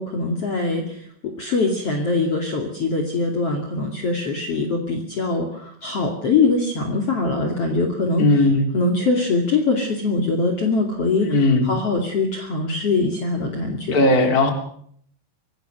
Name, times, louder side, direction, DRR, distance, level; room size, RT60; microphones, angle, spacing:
voice 1, 0.0-8.5 8.7-14.1, left 3 dB, 40° left, 2 dB, 3.1 m, -23 dB
voice 2, 8.2-8.7 11.2-11.7 13.9-14.5, left 2 dB, 25° left, 5 dB, 3.4 m, -17 dB
25.0 x 18.0 x 6.8 m, 0.63 s
omnidirectional pair, 4.4 m